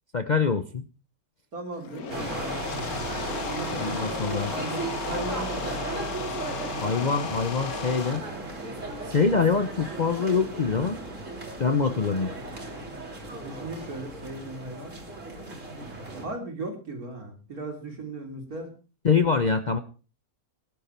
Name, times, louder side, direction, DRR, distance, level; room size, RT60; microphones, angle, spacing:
voice 1, 0.1-0.8 3.8-4.5 6.8-8.3 9.1-11.0 11.6-12.3 19.0-19.8, left 5 dB, 40° left, 10 dB, 0.8 m, -24 dB
voice 2, 1.5-2.6 3.4-5.8 13.2-15.0 16.2-18.7, right 2 dB, 80° right, 3 dB, 3.7 m, -37 dB
sound 1, 1.7-8.2, left 6 dB, 80° left, 1.8 m, -35 dB
sound 2, 2.1-16.3, right 2 dB, 55° right, 3.5 m, -35 dB
19.5 x 11.0 x 4.4 m, 0.36 s
omnidirectional pair, 1.5 m